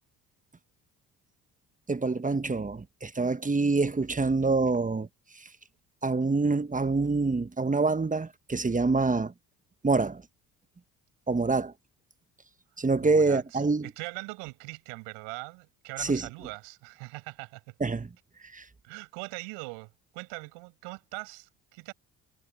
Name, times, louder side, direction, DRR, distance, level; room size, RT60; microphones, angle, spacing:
voice 1, 1.9-5.1 6.0-9.3 9.8-10.2 11.3-11.7 12.8-13.9 16.0-16.3 17.8-18.1 18.5-18.6, right 3 dB, 15° right, 1.4 m, -26 dB
voice 2, 13.0-17.7 18.8-21.9, right 29 dB, 70° right, 7.4 m, -41 dB
figure-of-eight pair, 50°, 47 cm